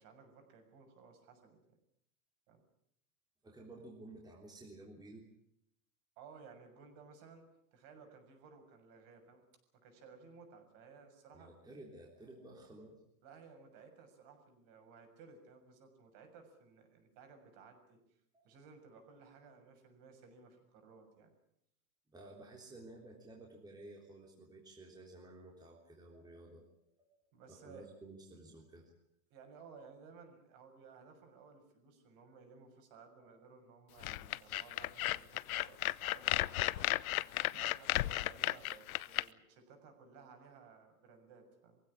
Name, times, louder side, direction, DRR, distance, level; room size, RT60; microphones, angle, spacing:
voice 1, 0.0-1.8 2.5-2.6 6.2-9.4 9.7-11.5 13.2-18.0 18.4-21.3 27.3-27.9 29.3-41.8, right 5 dB, 45° right, 5 dB, 6.8 m, -58 dB
voice 2, 3.4-5.3 11.3-13.0 18.3-18.5 22.1-26.7 27.0-27.1 27.5-28.9 33.2-33.3, right 2 dB, 10° right, -1 dB, 3.5 m, -53 dB
sound 1, 34.0-39.2, left 16 dB, 70° left, 0.8 m, -34 dB
23.0 x 16.0 x 9.9 m, 0.76 s
supercardioid pair, 140°, 44 cm